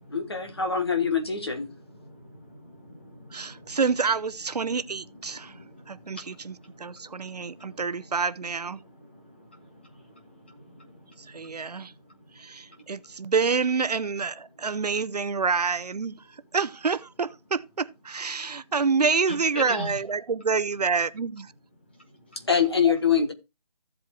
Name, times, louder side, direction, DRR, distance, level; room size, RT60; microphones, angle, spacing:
voice 1, 0.1-1.7 22.5-23.3, left 7 dB, 40° left, 1.2 m, -24 dB
voice 2, 2.0-3.8 5.1-7.8 9.0-11.2 11.7-11.8 19.3-19.9, equal, 15° left, 0.9 m, -42 dB
voice 3, 3.3-5.5 5.9-8.8 11.3-11.9 12.4-16.1 16.5-21.5, right 5 dB, 70° right, 0.7 m, -27 dB
15.0 x 7.8 x 2.3 m
hypercardioid pair, 180°, 21 cm